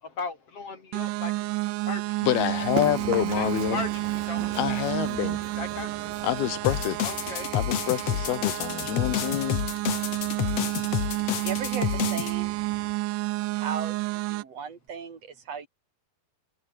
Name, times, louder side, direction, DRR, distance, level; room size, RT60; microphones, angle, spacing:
voice 1, 0.0-1.6 1.9-2.3 3.3-4.5 5.6-6.0 7.0-7.5, left 4 dB, 40° left, 4.2 m, -37 dB
sound 1, 0.9-14.4, right 19 dB, 80° right, 1.8 m, -30 dB
voice 2, 2.2-3.8 4.6-5.4 6.2-7.0 7.5-9.6, left 13 dB, 90° left, 3.3 m, -27 dB
Run, 2.4-12.9, right 5 dB, 65° right, 6.7 m, -41 dB
sound 2, 6.6-12.3, left 11 dB, 60° left, 1.8 m, -29 dB
voice 3, 11.4-12.6 13.5-15.7, right 6 dB, 45° right, 4.7 m, -36 dB
omnidirectional pair, 4.3 m